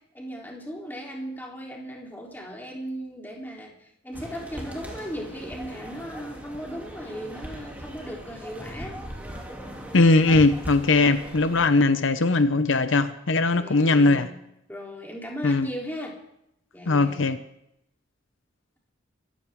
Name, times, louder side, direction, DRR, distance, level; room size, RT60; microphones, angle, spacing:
voice 1, 0.1-9.0 13.6-14.4 14.7-16.1 16.7-17.3, equal, 10° left, 3.5 m, -37 dB
sound 1, 4.1-11.7, equal, 10° right, 2.9 m, -39 dB
voice 2, 9.9-14.3 15.4-15.7 16.9-17.4, left 3 dB, 75° left, 0.8 m, -20 dB
25.5 x 14.5 x 3.7 m
head